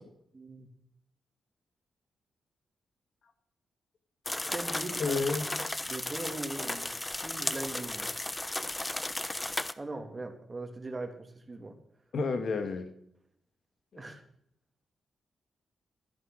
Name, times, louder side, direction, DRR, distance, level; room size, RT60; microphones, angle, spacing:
voice 1, 0.3-0.7 4.5-5.2 5.9-6.9 7.2-8.1 9.8-11.8 13.9-14.2, right 2 dB, 30° right, 6 dB, 2.9 m, -40 dB
sound 1, 4.3-9.7, left 1 dB, 20° left, 1.0 m, -35 dB
voice 2, 5.0-5.4 12.1-12.9 13.9-14.0, left 4 dB, 65° left, 7 dB, 2.1 m, -30 dB
13.0 x 11.0 x 6.5 m, 0.73 s
supercardioid pair, 50°, 0 cm